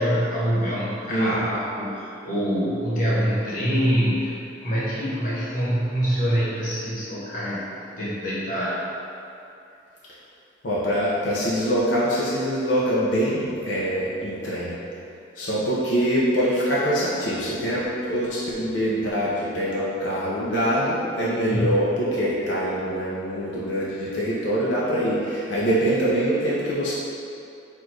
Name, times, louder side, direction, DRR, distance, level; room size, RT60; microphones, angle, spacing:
voice 1, 0.0-8.8 21.5-21.9, equal, 45° left, -8 dB, 1.2 m, -25 dB
voice 2, 10.6-14.7 15.4-26.9, equal, 85° left, -8 dB, 0.7 m, -24 dB
4.4 x 2.5 x 4.5 m, 2.6 s
head